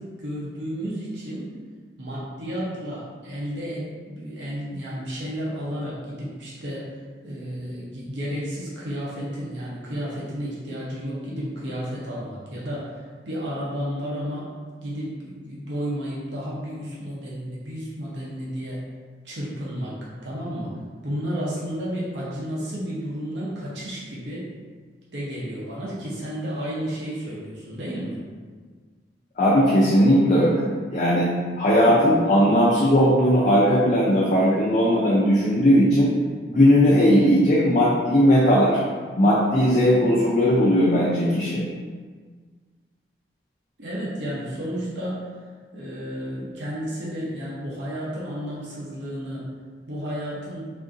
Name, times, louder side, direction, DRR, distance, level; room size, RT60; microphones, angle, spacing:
voice 1, 0.0-1.5 2.0-6.9 7.2-13.0 13.3-14.5 14.8-18.8 19.2-20.7 21.0-24.5 25.1-28.2 43.8-45.3 45.7-49.5 49.9-50.7, equal, 80° right, -6 dB, 0.8 m, -32 dB
voice 2, 29.4-30.7 30.9-36.1 36.5-38.8 39.2-41.6, equal, 45° left, -7 dB, 0.5 m, -18 dB
3.5 x 2.6 x 2.5 m, 1.5 s
head